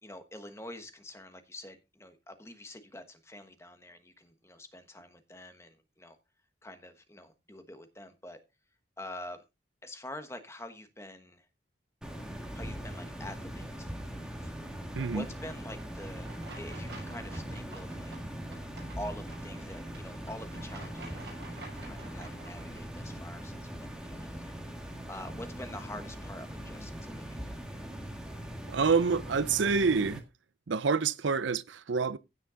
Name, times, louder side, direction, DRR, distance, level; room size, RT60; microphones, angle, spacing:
voice 1, 0.0-6.2 6.6-8.4 9.0-9.4 9.8-11.5 12.5-14.5 15.1-18.3 19.0-24.6 25.1-27.6, left 1 dB, 15° left, 1.2 m, -46 dB
sound 1, 12.0-30.2, equal, 5° right, 1.8 m, -41 dB
sound 2, 16.2-22.8, right 2 dB, 60° right, 7.1 m, -49 dB
voice 2, 28.7-30.2 30.7-32.2, right 5 dB, 75° right, 0.5 m, -27 dB
16.0 x 5.7 x 3.8 m
head